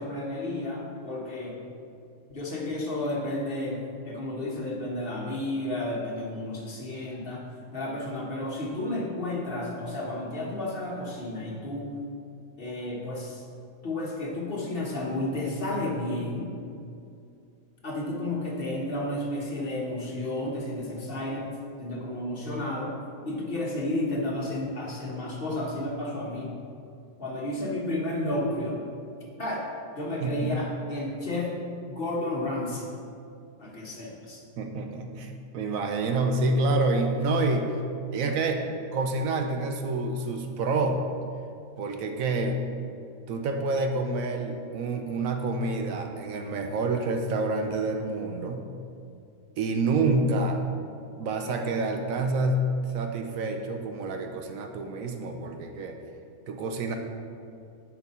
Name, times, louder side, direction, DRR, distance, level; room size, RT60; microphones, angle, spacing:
voice 1, 0.0-1.6 2.3-7.4 7.7-12.0 12.6-13.4 13.8-16.5 17.8-21.5 21.8-23.0 23.2-26.5 27.2-28.8 29.4-29.7 30.0-31.6 31.9-32.8 33.6-34.4, left 1 dB, 40° left, -3 dB, 1.3 m, -32 dB
voice 2, 30.2-30.6 34.6-37.7 38.1-38.6 38.9-41.0 41.8-42.7 43.3-48.6 49.6-50.6 51.2-56.0 56.5-57.0, right 2 dB, 70° right, 5 dB, 1.0 m, -28 dB
10.5 x 4.5 x 4.2 m, 2.5 s
omnidirectional pair, 1.5 m